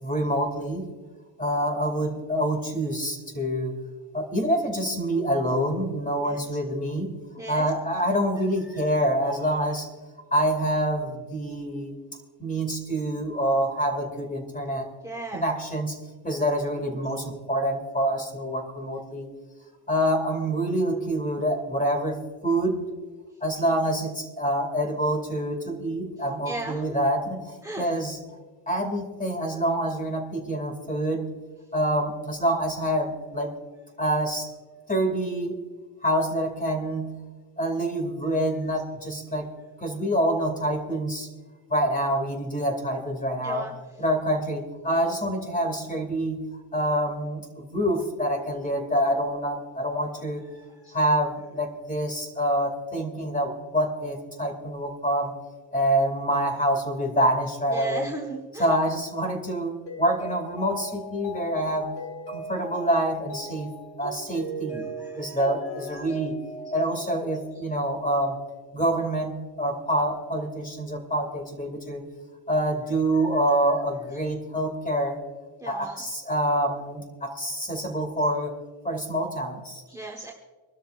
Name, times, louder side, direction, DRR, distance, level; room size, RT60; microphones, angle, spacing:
voice 1, 0.0-0.9 1.4-3.7 4.1-7.1 7.5-9.9 10.3-11.9 12.4-14.9 15.3-16.0 16.2-19.3 19.9-22.9 23.4-28.2 28.7-31.3 31.7-33.5 34.0-34.5 34.9-35.6 36.0-37.2 37.6-39.5 39.8-41.3 41.7-43.7 44.0-46.5 46.7-50.4 50.9-55.3 55.7-58.1 58.6-61.9 62.3-63.7 64.0-64.9 65.1-66.4 66.7-68.4 68.7-72.0 72.5-75.2 75.6-78.5 78.8-79.8, right 1 dB, 15° left, 4 dB, 2.5 m, -26 dB
voice 2, 7.4-7.7 8.7-8.9 15.0-15.4 26.4-26.9 27.6-27.9 43.4-43.7 50.5-51.0 57.7-58.7 64.7-65.4 65.9-66.1 75.6-76.0 79.9-80.3, right 2 dB, 5° right, 0 dB, 1.4 m, -37 dB
Mallet percussion, 59.9-68.0, right 1 dB, 55° left, 4.0 m, -39 dB
26.0 x 13.0 x 2.5 m, 1.4 s
wide cardioid pair, 145°, 46 cm